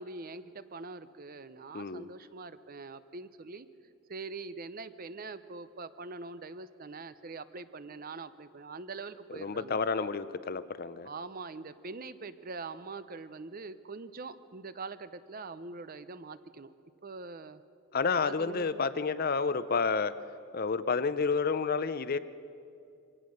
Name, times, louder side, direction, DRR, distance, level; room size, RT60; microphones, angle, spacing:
voice 1, 0.0-3.7 4.1-9.8 11.0-16.7 17.0-17.6 18.2-18.9, right 3 dB, 40° right, 13 dB, 0.6 m, -43 dB
voice 2, 1.7-2.1 9.4-11.1 17.9-20.1 20.5-22.2, left 5 dB, 40° left, 14 dB, 0.5 m, -30 dB
24.0 x 17.5 x 6.4 m, 2.5 s
head